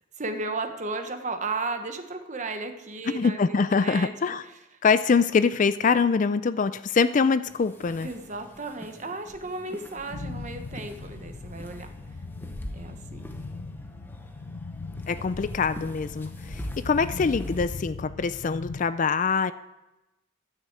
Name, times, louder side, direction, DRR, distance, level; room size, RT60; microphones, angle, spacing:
voice 1, 0.2-4.1 8.0-11.9 12.7-13.3, right 3 dB, 35° right, 6 dB, 1.1 m, -34 dB
voice 2, 3.1-4.4 4.8-8.1 15.1-19.5, left 5 dB, 40° left, 14 dB, 0.3 m, -24 dB
sound 1, 7.4-17.7, equal, 10° left, 0.8 m, -44 dB
sound 2, 10.1-18.8, left 3 dB, 85° left, 0.8 m, -39 dB
13.0 x 6.3 x 8.0 m, 1.0 s
head